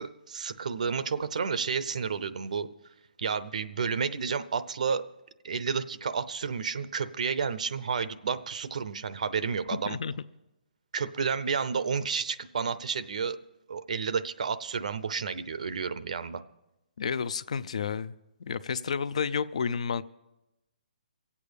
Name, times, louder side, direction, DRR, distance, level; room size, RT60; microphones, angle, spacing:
voice 1, 0.0-2.7 3.2-5.0 5.4-10.0 10.9-13.4 13.7-16.4, right 6 dB, 55° right, 14 dB, 0.7 m, -31 dB
voice 2, 17.0-18.1 18.4-20.0, left 6 dB, 45° left, 17 dB, 0.4 m, -31 dB
23.5 x 8.4 x 5.1 m, 0.94 s
hypercardioid pair, 180°, 5 cm